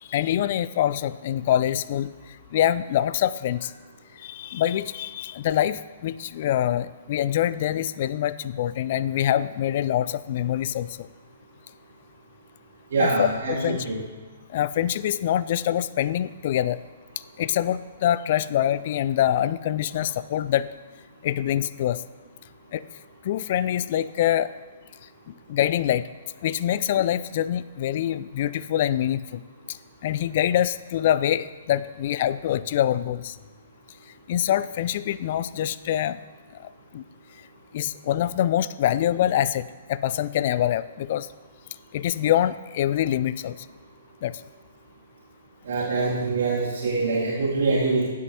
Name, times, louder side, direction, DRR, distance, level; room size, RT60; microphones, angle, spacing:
voice 1, 0.0-3.7 4.1-11.1 13.0-13.9 14.5-16.8 17.4-20.7 21.2-22.0 22.7-22.8 23.2-24.5 25.0-26.1 26.4-29.4 29.7-33.4 34.3-36.2 36.5-37.0 37.7-41.3 41.9-43.7 44.2-44.4, left 11 dB, 45° left, 16 dB, 0.3 m, -25 dB
voice 2, 12.9-14.0 45.7-48.0, right 3 dB, 50° right, -7 dB, 2.5 m, -24 dB
15.5 x 8.4 x 2.8 m, 1.4 s
figure-of-eight pair, 120°, 0 cm